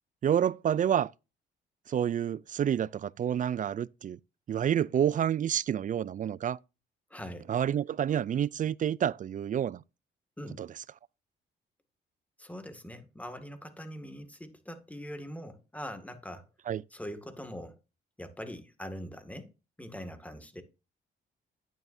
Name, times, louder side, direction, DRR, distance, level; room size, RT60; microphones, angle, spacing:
voice 1, 0.2-1.1 1.9-4.2 4.5-6.6 7.5-9.8 10.6-10.7 16.7-16.8, right 9 dB, 40° right, 0.4 m, -28 dB
voice 2, 7.1-7.5 10.4-10.6 12.4-16.5 16.9-17.8 18.2-19.5 19.8-20.6, equal, 5° left, 2.0 m, -42 dB
10.5 x 9.1 x 2.6 m
cardioid pair, 90°, 20 cm